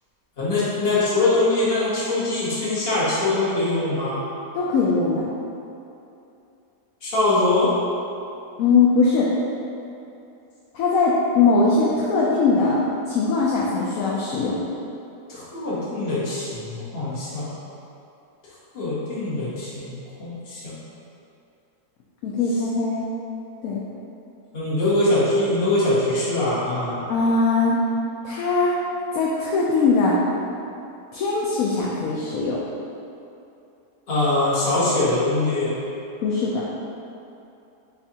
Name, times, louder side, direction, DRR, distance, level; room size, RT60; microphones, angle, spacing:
voice 1, 0.4-4.2 7.0-7.7 15.3-17.5 18.7-20.7 24.5-27.0 34.1-35.8, left 2 dB, 40° left, -9 dB, 1.2 m, -23 dB
voice 2, 4.5-5.2 8.6-9.3 10.7-12.8 13.1-14.6 22.2-23.0 23.6-23.8 27.1-27.8 28.2-28.8 29.1-30.2 31.1-32.6 36.2-36.6, left 4 dB, 70° left, -5 dB, 0.9 m, -20 dB
6.7 x 2.5 x 2.7 m, 2.7 s
omnidirectional pair, 1.8 m